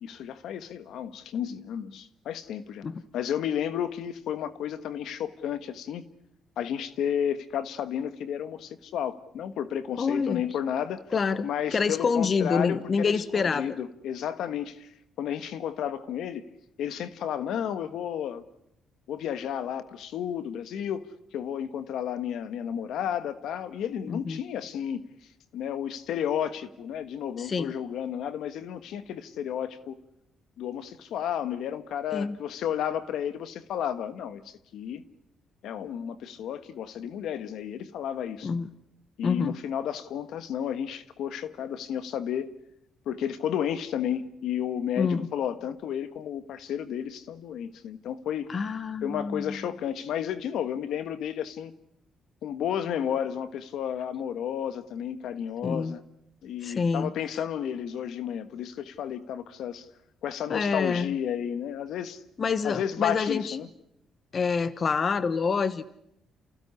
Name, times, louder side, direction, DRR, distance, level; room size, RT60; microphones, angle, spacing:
voice 1, 0.0-2.8 3.1-6.1 6.6-11.0 11.4-14.9 15.2-16.4 16.8-18.4 19.1-25.0 25.5-30.0 30.6-35.0 35.6-38.5 39.2-42.5 43.0-48.5 49.0-51.8 52.4-56.0 56.4-59.9 60.2-62.2 62.6-63.7, left 9 dB, 80° left, 1.4 m, -32 dB
voice 2, 10.0-10.4 11.1-13.7 24.1-24.4 27.4-27.7 32.1-32.4 38.4-38.7 39.2-39.6 45.0-45.3 48.5-49.6 55.6-55.9 56.6-57.1 60.5-61.1 62.4-63.6 64.3-65.9, left 5 dB, 45° left, 1.1 m, -27 dB
29.0 x 16.0 x 9.8 m
cardioid pair, 90°, 0 cm